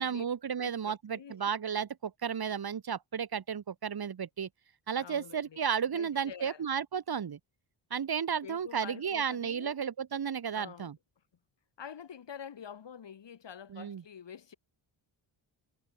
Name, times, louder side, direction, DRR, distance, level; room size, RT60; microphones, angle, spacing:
voice 1, 0.0-4.5 4.9-7.4 7.9-11.0 13.7-14.0, right 7 dB, 45° right, 2.0 m, -33 dB
voice 2, 0.6-1.5 5.0-5.6 5.9-6.7 8.4-9.8 10.5-10.9 11.8-14.5, left 8 dB, 55° left, 4.9 m, -47 dB
cardioid pair, 75°, 50 cm